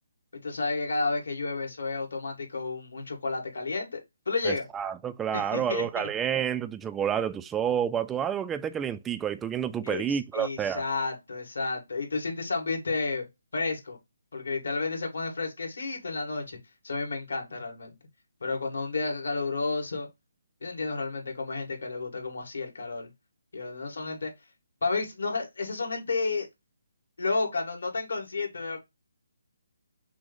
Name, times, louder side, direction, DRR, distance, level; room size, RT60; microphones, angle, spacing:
voice 1, 0.4-4.0 4.3-4.6 5.3-6.1 9.8-13.3 13.5-14.0 14.3-16.6 16.8-18.0 18.4-20.1 20.6-23.1 23.5-24.3 24.8-26.5 27.2-28.8, left 3 dB, 70° left, 2.2 m, -31 dB
voice 2, 4.4-10.8, right 8 dB, 10° right, 0.3 m, -29 dB
6.0 x 2.1 x 3.8 m
hypercardioid pair, 165°, 0 cm